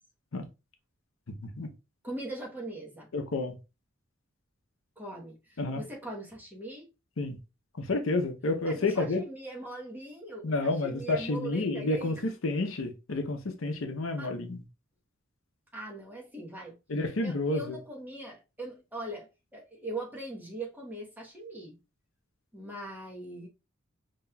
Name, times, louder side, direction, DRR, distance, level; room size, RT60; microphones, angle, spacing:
voice 1, 1.3-1.7 3.1-3.6 5.6-5.8 7.2-7.4 7.8-9.2 10.4-12.2 12.4-14.6 16.9-17.8, left 2 dB, 65° left, 0.7 m, -30 dB
voice 2, 2.0-3.1 5.0-6.9 8.6-12.2 14.2-14.3 15.7-16.8 17.2-21.8 22.5-23.5, right 1 dB, 10° right, 1.0 m, -41 dB
5.5 x 2.9 x 2.3 m
head